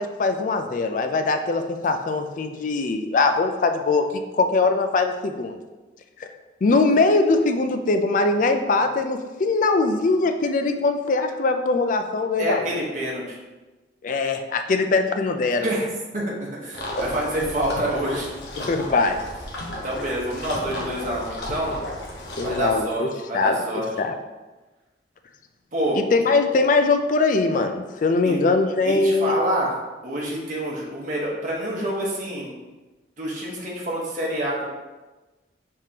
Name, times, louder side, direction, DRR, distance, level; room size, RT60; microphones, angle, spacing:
voice 1, 0.0-4.0 4.3-5.6 6.2-6.3 6.6-12.7 14.0-15.7 18.7-19.2 22.4-23.1 23.3-23.6 24.0-24.1 25.9-29.4, left 3 dB, 45° left, 7 dB, 0.4 m, -21 dB
voice 2, 12.4-13.4 15.6-15.9 16.1-18.3 19.8-21.8 22.4-23.9 25.7-26.0 28.2-28.4 28.8-29.7 30.0-32.5 33.2-34.7, right 1 dB, 45° right, -4 dB, 1.1 m, -27 dB
sound 1, 16.7-22.8, left 1 dB, 65° left, 0.8 m, -33 dB
4.8 x 3.6 x 2.8 m, 1.2 s
head